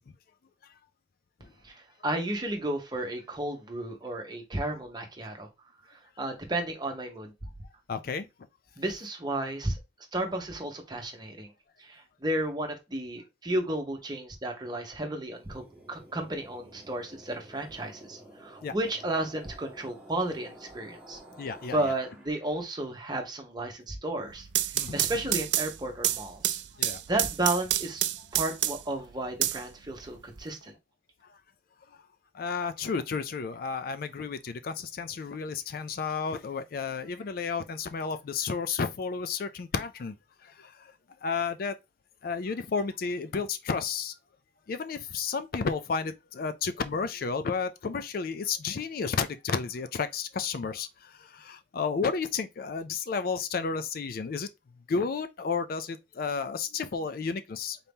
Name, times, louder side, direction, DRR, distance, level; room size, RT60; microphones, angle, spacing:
voice 1, 1.6-5.5 6.2-7.3 8.8-9.8 10.1-11.5 11.8-21.2 21.7-26.6 27.1-28.1 28.3-30.7, right 1 dB, 25° right, 1.1 m, -33 dB
voice 2, 7.9-8.3 18.6-18.7 21.4-21.9 24.7-25.0 26.8-27.0 32.3-40.2 40.4-40.9 41.2-41.7 42.2-44.1 44.7-54.5 54.9-57.8, left 5 dB, 55° left, 0.4 m, -32 dB
sound 1, 15.4-22.7, right 1 dB, 10° right, 1.3 m, -51 dB
sound 2, 24.3-29.0 29.4-30.4, right 13 dB, 75° right, 0.4 m, -29 dB
4.1 x 2.8 x 3.5 m
head